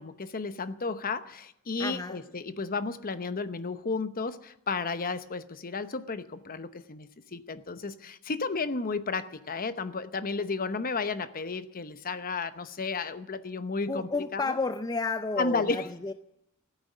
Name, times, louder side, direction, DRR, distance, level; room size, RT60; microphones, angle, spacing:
voice 1, 0.0-14.6 15.4-15.9, left 4 dB, 40° left, 12 dB, 0.9 m, -33 dB
voice 2, 1.8-2.2 13.9-16.1, left 3 dB, 20° left, 9 dB, 0.5 m, -31 dB
15.5 x 9.0 x 9.5 m, 0.82 s
head